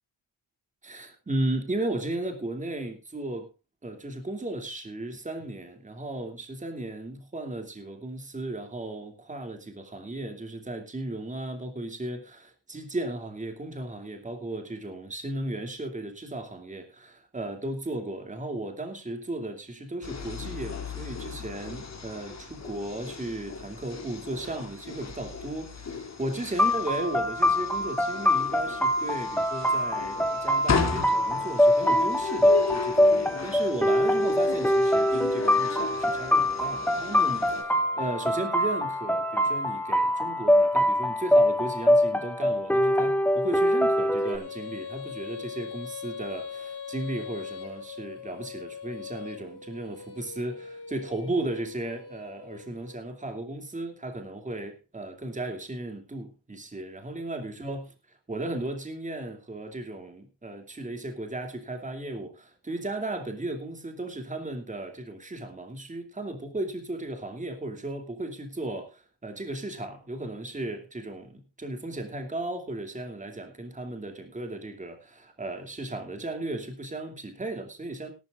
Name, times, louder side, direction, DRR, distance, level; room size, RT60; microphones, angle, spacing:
voice 1, 0.8-3.5 3.8-78.1, right 2 dB, 15° right, 2.7 m, -35 dB
sound 1, 20.0-37.6, left 5 dB, 35° left, 2.9 m, -36 dB
sound 2, 26.6-44.4, left 1 dB, 5° left, 1.8 m, -24 dB
Female singing, 44.2-53.0, left 6 dB, 60° left, 5.1 m, -41 dB
18.0 x 12.5 x 2.5 m
cardioid pair, 115°, 44 cm